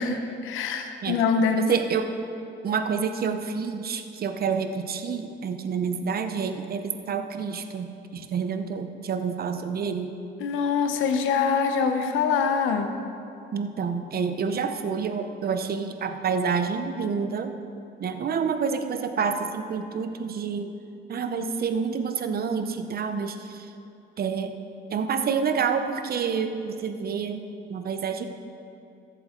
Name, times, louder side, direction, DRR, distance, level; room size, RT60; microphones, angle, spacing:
voice 1, 0.0-1.7 10.4-12.9, left 5 dB, 90° left, 6 dB, 0.9 m, -24 dB
voice 2, 1.5-2.1 2.6-10.1 13.5-17.5 18.0-20.7 21.1-23.7 24.2-24.5 24.9-27.4 27.7-28.3, right 6 dB, 50° right, 8 dB, 0.8 m, -28 dB
14.0 x 7.9 x 3.8 m, 2.7 s
cardioid pair, 90°, 20 cm